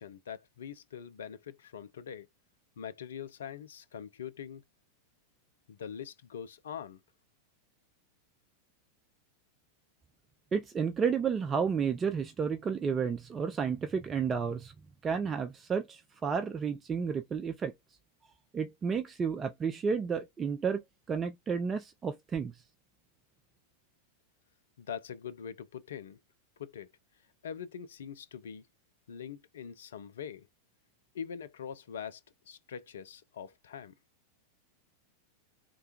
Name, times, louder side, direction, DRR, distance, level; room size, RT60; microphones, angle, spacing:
voice 1, 0.0-2.3 2.8-4.6 5.7-7.0 24.8-26.2 26.6-26.9 27.4-28.6 29.1-30.5 31.1-32.2 32.5-34.0, left 8 dB, 65° left, 0.3 m, -43 dB
voice 2, 10.5-14.7 15.0-17.7 18.5-20.8 21.1-22.6, right 6 dB, 20° right, 0.3 m, -31 dB
3.3 x 2.2 x 2.8 m
figure-of-eight pair, 90°, 0 cm